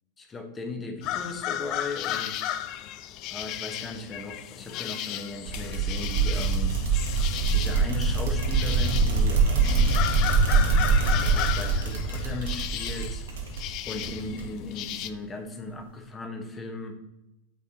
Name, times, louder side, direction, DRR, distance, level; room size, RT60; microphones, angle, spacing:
voice 1, 0.2-2.5 3.3-6.8 7.5-10.1 11.1-13.2 13.8-16.9, left 2 dB, 20° left, 5 dB, 1.0 m, -37 dB
sound 1, 1.0-15.1, left 12 dB, 40° left, 0.3 m, -34 dB
sound 2, 5.5-14.7, right 4 dB, 60° right, 1.4 m, -24 dB
8.4 x 4.6 x 2.9 m, 0.92 s
figure-of-eight pair, 90°, 0 cm